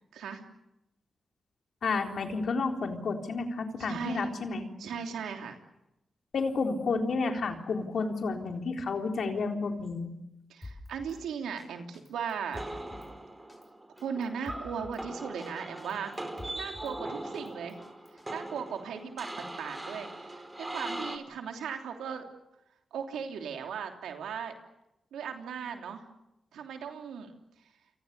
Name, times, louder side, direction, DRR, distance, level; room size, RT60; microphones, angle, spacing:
voice 1, 1.8-4.7 6.3-10.1, left 4 dB, 70° left, 4 dB, 3.9 m, -31 dB
voice 2, 3.8-4.3 4.8-5.6 10.5-12.6 14.0-16.1 16.5-17.8 18.3-22.3 22.9-24.5 25.1-26.0 26.5-27.3, right 7 dB, 90° right, 4 dB, 3.1 m, -37 dB
Drum kit, 10.6-11.2 11.6-11.7 11.9-13.1 13.5-13.7 14.0-15.0 15.4-15.5 15.8-16.9 17.3-18.3, left 2 dB, 30° left, 6.5 m, -48 dB
sound 1, 12.5-21.2, right 1 dB, 20° right, 4.8 m, -40 dB
29.0 x 25.0 x 6.8 m, 0.89 s
cardioid pair, 55°, 0 cm